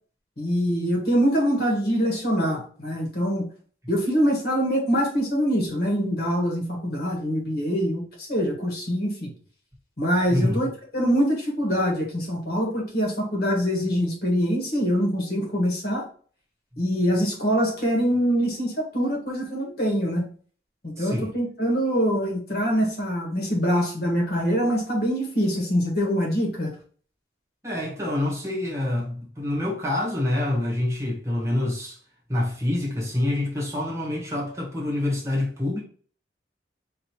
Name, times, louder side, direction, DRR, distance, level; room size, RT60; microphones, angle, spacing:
voice 1, 0.4-3.5 3.9-9.3 10.0-16.1 16.8-20.3 20.8-26.7, equal, 55° left, 1.5 m, -24 dB
voice 2, 10.3-10.6 21.0-21.3 27.6-32.0 32.3-35.8, left 1 dB, 15° right, 1.2 m, -26 dB
4.4 x 3.0 x 2.9 m
head